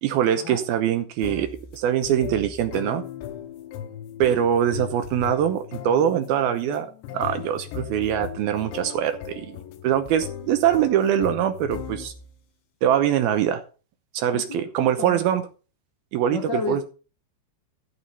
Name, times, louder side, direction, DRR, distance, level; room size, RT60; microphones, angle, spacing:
voice 1, 0.0-3.0 4.2-6.9 7.1-9.6 9.8-12.1 12.8-13.6 14.1-15.4 16.1-16.8, right 10 dB, 75° right, 9 dB, 2.4 m, -23 dB
sound 1, 1.2-12.4, left 9 dB, 90° left, 3.3 m, -38 dB
voice 2, 14.3-14.6 15.0-15.2 16.3-16.8, left 3 dB, 70° left, 2 dB, 1.0 m, -30 dB
14.0 x 5.8 x 5.5 m, 0.35 s
omnidirectional pair, 5.0 m